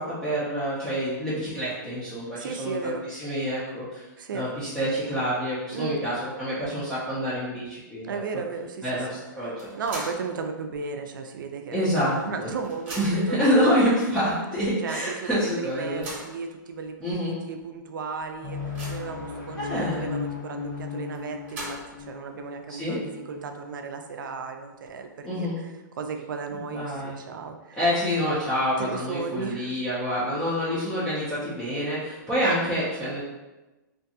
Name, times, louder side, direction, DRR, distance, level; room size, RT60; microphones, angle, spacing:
voice 1, 0.0-4.0 4.3-8.2 8.8-9.7 11.7-12.5 12.9-16.0 17.0-17.4 19.6-20.1 22.7-23.0 25.2-25.6 26.7-27.2 27.8-33.2, equal, 5° left, -11 dB, 0.3 m, -27 dB
voice 2, 2.3-3.0 4.2-4.5 5.7-6.0 8.0-13.0 13.3-13.6 14.8-27.8 28.8-29.8, right 5 dB, 85° right, 5 dB, 0.4 m, -35 dB
sound 1, 9.6-10.3 10.7-10.8 11.9-12.0 12.3-13.4 14.1-14.2 14.6-14.7 15.7-16.4 17.1-17.2 17.6-17.7 18.2-19.2 21.2-22.1, right 1 dB, 15° right, 0.7 m, -39 dB
sound 2, 18.4-24.7, left 5 dB, 70° left, 1.2 m, -36 dB
2.5 x 2.2 x 2.6 m, 1.1 s
hypercardioid pair, 165°, 11 cm